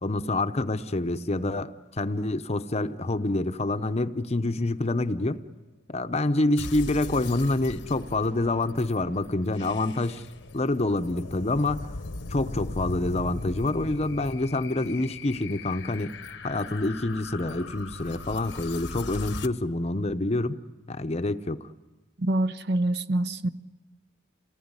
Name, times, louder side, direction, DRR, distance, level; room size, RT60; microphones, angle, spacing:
voice 1, 0.0-5.4 5.9-10.3 10.5-11.8 12.3-16.1 16.4-20.6 20.9-21.7, left 2 dB, 35° left, 0.8 m, -27 dB
sound 1, 6.6-19.5, left 3 dB, 65° left, 1.0 m, -39 dB
voice 2, 22.2-23.5, right 1 dB, 55° right, 0.8 m, -25 dB
28.5 x 19.0 x 9.7 m
head